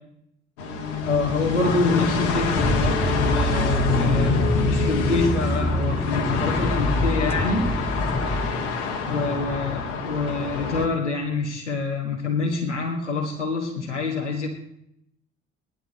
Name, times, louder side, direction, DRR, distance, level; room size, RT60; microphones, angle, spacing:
sound 1, 0.6-10.9, left 4 dB, 70° left, 1.8 m, -26 dB
voice 1, 1.0-7.6 9.1-14.5, left 4 dB, 85° left, 0 dB, 1.5 m, -26 dB
sound 2, 2.6-8.5, equal, 5° left, 1.8 m, -26 dB
18.0 x 11.0 x 4.2 m, 0.79 s
figure-of-eight pair, 45°, 34 cm